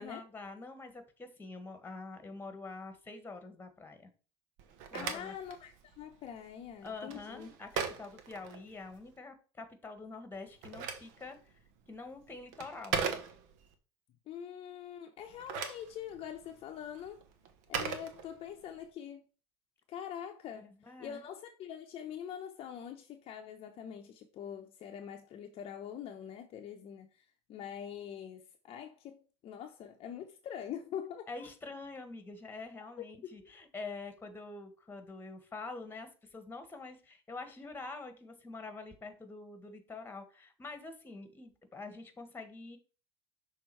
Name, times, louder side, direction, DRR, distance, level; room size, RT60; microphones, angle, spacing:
voice 1, 0.0-4.1 4.9-5.3 6.8-11.4 11.9-13.0 20.5-21.2 31.3-42.8, left 3 dB, 15° left, 1.4 m, -46 dB
Telephone, 4.6-9.1 10.3-13.7 15.2-18.8, right 6 dB, 60° right, 1.1 m, -40 dB
voice 2, 4.9-7.5 14.3-17.2 17.7-19.2 19.9-20.7 21.0-31.5 33.0-33.5, left 9 dB, 45° left, 0.7 m, -44 dB
6.2 x 3.6 x 4.7 m
hypercardioid pair, 95°, 14 cm